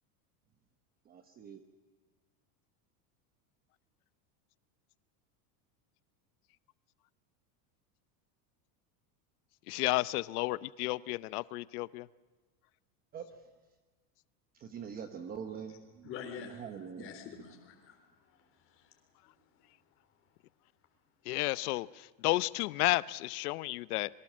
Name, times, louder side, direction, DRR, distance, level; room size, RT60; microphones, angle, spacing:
voice 1, 1.1-1.6 13.1-13.2 14.6-16.1 16.6-17.1, right 7 dB, 20° right, 7 dB, 1.1 m, -43 dB
voice 2, 9.7-12.1 21.2-24.1, left 20 dB, 70° left, 18 dB, 0.8 m, -32 dB
voice 3, 16.0-19.0 19.4-19.7, left 6 dB, 25° left, 4 dB, 3.9 m, -47 dB
26.0 x 23.0 x 7.4 m, 1.3 s
supercardioid pair, 180°, 46 cm